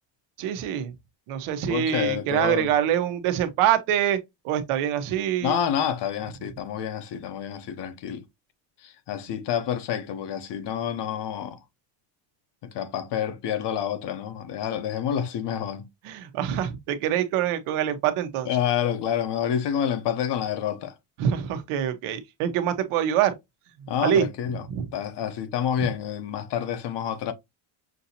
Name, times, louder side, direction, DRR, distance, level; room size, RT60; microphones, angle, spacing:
voice 1, 0.4-0.9 1.3-4.2 4.4-5.6 16.0-18.5 21.2-23.3 24.0-24.3 24.7-24.9 25.8-25.9, right 10 dB, 90° right, 1.1 m, -25 dB
voice 2, 1.6-2.7 5.4-8.3 8.8-11.6 12.6-15.9 18.4-20.9 23.9-24.6 24.9-27.3, left 9 dB, 55° left, 0.9 m, -28 dB
6.4 x 2.7 x 2.8 m
cardioid pair, 145°, 50 cm